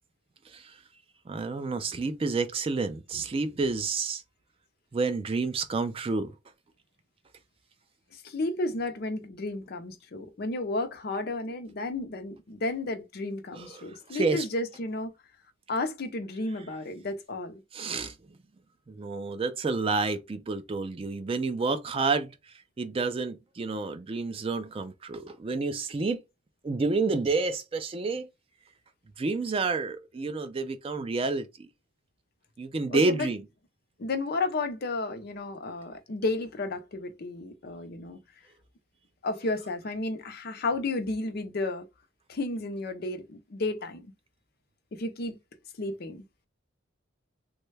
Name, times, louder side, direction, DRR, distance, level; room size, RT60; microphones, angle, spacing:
voice 1, 1.3-4.2 4.9-6.3 13.5-14.4 17.7-18.1 18.9-22.3 22.8-26.2 26.6-28.3 29.2-31.7 32.6-33.4, right 3 dB, 30° right, 0.3 m, -29 dB
voice 2, 8.1-15.1 15.7-17.6 32.9-33.3 34.0-38.2 39.2-41.9 42.3-44.1 44.9-45.4 45.8-46.2, left 2 dB, 50° left, 0.5 m, -32 dB
3.1 x 2.2 x 3.2 m
head